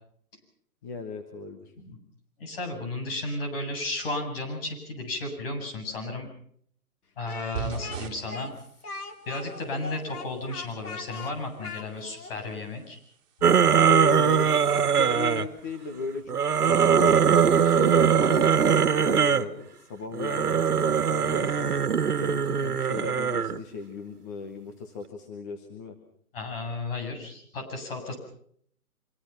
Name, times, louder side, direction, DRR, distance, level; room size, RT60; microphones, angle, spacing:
voice 1, 0.8-1.7 13.9-21.8 22.0-25.9, left 3 dB, 10° left, 4 dB, 0.9 m, -35 dB
voice 2, 2.4-6.3 7.2-8.5 9.3-13.0 26.3-28.2, left 2 dB, 40° left, 3 dB, 7.9 m, -34 dB
Speech, 7.3-12.4, left 4 dB, 85° left, 3.1 m, -40 dB
sound 1, 7.6-16.3, right 8 dB, 30° right, 4.4 m, -44 dB
sound 2, 13.4-15.5 16.3-19.5 20.1-23.6, right 7 dB, 85° right, 1.7 m, -21 dB
25.0 x 24.0 x 5.9 m, 0.63 s
hypercardioid pair, 165°, 44 cm